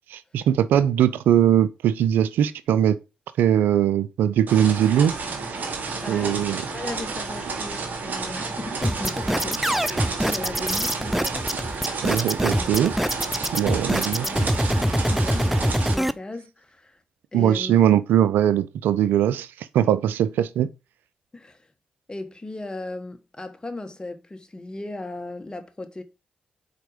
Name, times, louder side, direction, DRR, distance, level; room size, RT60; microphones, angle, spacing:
voice 1, 0.1-3.0 3.4-5.2 6.1-6.6 12.0-12.9 13.5-14.5 17.3-20.7, right 10 dB, 80° right, 0.4 m, -21 dB
sound 1, 4.5-16.0, right 4 dB, 60° right, 1.5 m, -31 dB
voice 2, 6.0-12.0 12.5-12.9 13.7-17.0 17.3-17.8 21.3-21.7 22.1-26.0, left 2 dB, 25° left, 1.3 m, -37 dB
sound 2, 8.8-16.1, equal, 5° right, 0.4 m, -24 dB
5.0 x 4.4 x 4.9 m
supercardioid pair, 45°, 3 cm